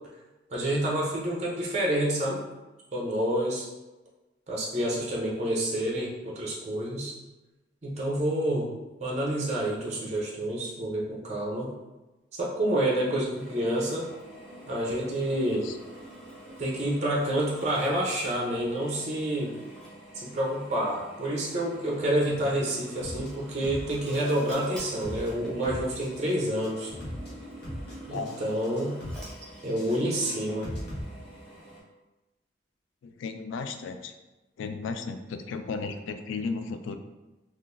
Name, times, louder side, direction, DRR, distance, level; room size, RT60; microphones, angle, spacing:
voice 1, 0.5-2.4 2.9-3.7 4.5-7.1 7.8-8.7 9.0-11.7 12.3-14.0 14.7-15.7 16.6-19.5 20.1-26.9 28.1-29.0 29.6-30.7, right 1 dB, 35° right, -4 dB, 0.5 m, -28 dB
Drill, 13.3-31.8, equal, 5° left, 0.8 m, -47 dB
sound 1, 23.0-23.3 23.6-24.4 24.6-25.3 25.6-26.3 26.6-27.3 27.6-28.4 28.6-29.3 29.6-31.0, equal, 55° left, 0.9 m, -38 dB
voice 2, 28.1-28.7 33.0-34.1 34.6-37.0, left 4 dB, 85° left, 8 dB, 0.3 m, -35 dB
3.6 x 2.4 x 2.5 m, 1.1 s
head